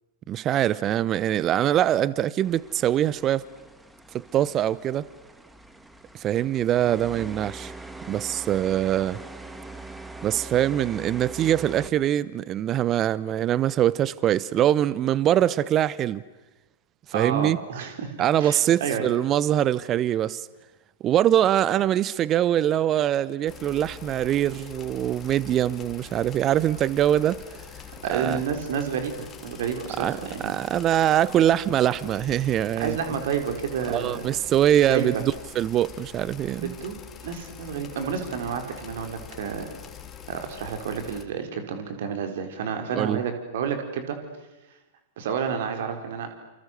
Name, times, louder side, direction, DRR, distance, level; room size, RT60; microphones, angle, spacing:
voice 1, 0.3-3.5 4.1-5.1 6.1-7.7 8.1-9.2 10.2-16.2 17.1-17.6 18.2-20.5 21.0-27.4 28.1-28.4 30.0-30.2 30.4-33.0 33.9-36.7 42.9-43.2, right 11 dB, 30° right, 0.8 m, -23 dB
sound 1, 2.4-11.9, right 2 dB, 5° right, 2.1 m, -42 dB
voice 2, 17.1-19.1 28.0-30.6 32.8-34.3 34.9-35.2 36.6-37.0 37.2-39.7 40.3-44.2 45.2-46.3, right 7 dB, 60° right, 4.8 m, -30 dB
sound 2, 23.5-41.2, left 7 dB, 25° left, 3.1 m, -44 dB
28.5 x 28.0 x 6.8 m
figure-of-eight pair, 100°, 0 cm